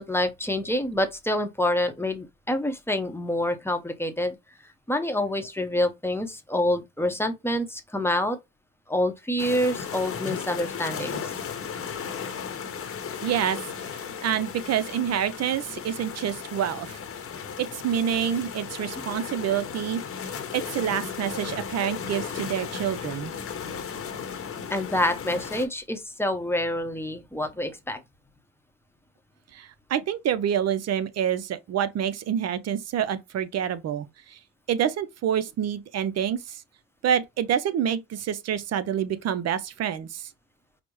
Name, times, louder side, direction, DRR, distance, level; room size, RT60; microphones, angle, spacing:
voice 1, 0.0-4.4 4.9-8.4 8.9-11.3 19.0-19.1 24.7-28.0, left 1 dB, 10° left, 0.7 m, -27 dB
sound 1, 9.4-25.7, left 7 dB, 50° left, 0.9 m, -35 dB
voice 2, 13.2-13.6 13.9-17.0 17.6-20.0 20.5-23.3 29.5-34.4 34.7-36.6 37.0-40.3, right 9 dB, 60° right, 0.6 m, -27 dB
5.0 x 2.0 x 3.1 m
cardioid pair, 90°, 30 cm